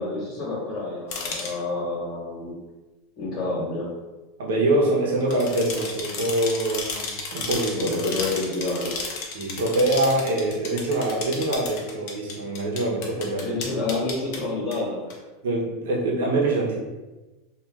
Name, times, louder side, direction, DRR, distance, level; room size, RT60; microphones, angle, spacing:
voice 1, 0.0-2.5 3.2-3.9 7.7-8.9 13.4-15.1, left 2 dB, 45° left, -6 dB, 1.1 m, -29 dB
sound 1, 1.1-1.5 5.2-14.4 14.7-14.8 15.1-15.2, left 4 dB, 60° left, 0.6 m, -33 dB
voice 2, 4.4-8.0 9.3-13.5 15.4-16.8, right 1 dB, 85° right, -2 dB, 0.7 m, -24 dB
2.4 x 2.3 x 3.2 m, 1.1 s
supercardioid pair, 125°, 0 cm